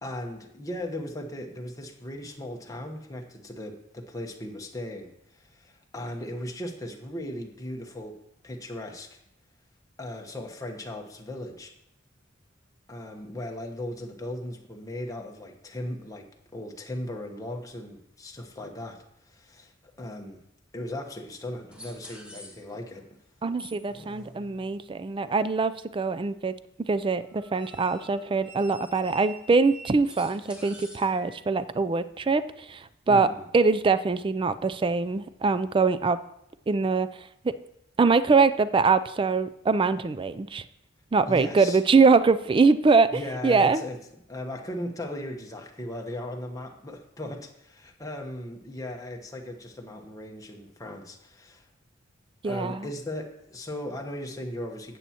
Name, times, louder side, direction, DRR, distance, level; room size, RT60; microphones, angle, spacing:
voice 1, 0.0-8.2 8.4-9.2 10.0-11.7 12.9-19.7 20.0-20.4 20.7-23.1 33.1-33.5 41.3-41.8 43.1-44.0 44.3-51.7 52.4-55.0, left 1 dB, 15° left, 2 dB, 1.0 m, -37 dB
sound 1, 21.7-23.0 23.5-24.9 27.2-31.5, right 1 dB, 5° right, 1.3 m, -47 dB
voice 2, 23.4-26.5 26.9-36.2 36.7-37.1 37.4-37.6 38.0-40.6 41.1-43.8 52.4-52.9, right 4 dB, 25° right, 14 dB, 0.3 m, -23 dB
13.0 x 8.4 x 2.9 m, 0.78 s
head